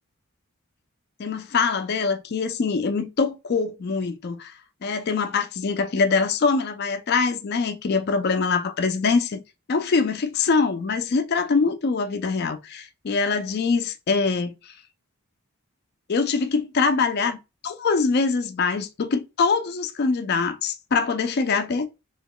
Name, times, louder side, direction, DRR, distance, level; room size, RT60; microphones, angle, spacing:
voice 1, 1.2-4.5 4.8-9.4 9.7-14.7 16.1-17.4 17.6-21.9, left 4 dB, 45° left, 0.4 m, -23 dB
2.9 x 2.2 x 3.6 m
head